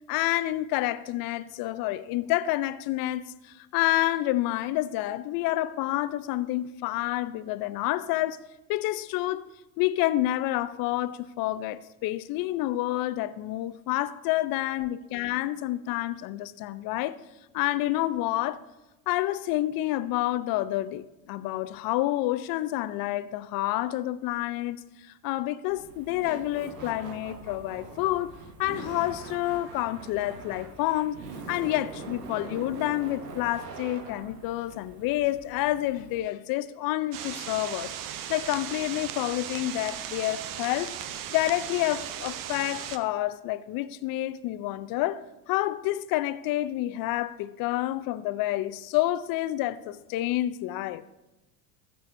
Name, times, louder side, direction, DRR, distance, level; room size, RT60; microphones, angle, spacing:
voice 1, 0.1-8.4 8.7-9.5 9.8-17.2 17.5-18.6 19.1-28.3 28.6-31.2 31.5-37.9 38.3-40.9 41.3-51.0, left 15 dB, 50° left, 0.6 m, -29 dB
Laughter, 25.7-36.2, right 3 dB, 80° right, 1.4 m, -43 dB
sound 1, 37.1-43.0, right 10 dB, 45° right, 0.8 m, -37 dB
13.0 x 7.9 x 2.6 m
hypercardioid pair, 80°, 46 cm